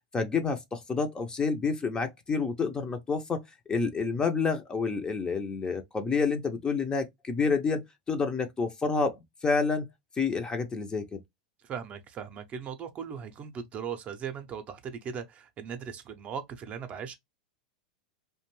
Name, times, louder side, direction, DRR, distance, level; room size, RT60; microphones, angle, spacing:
voice 1, 0.1-3.4 3.7-7.8 8.1-9.9 10.2-11.2, left 4 dB, 20° left, 0.5 m, -29 dB
voice 2, 11.6-17.2, right 7 dB, 35° right, 0.5 m, -38 dB
2.5 x 2.2 x 2.9 m
hypercardioid pair, 100°, 4 cm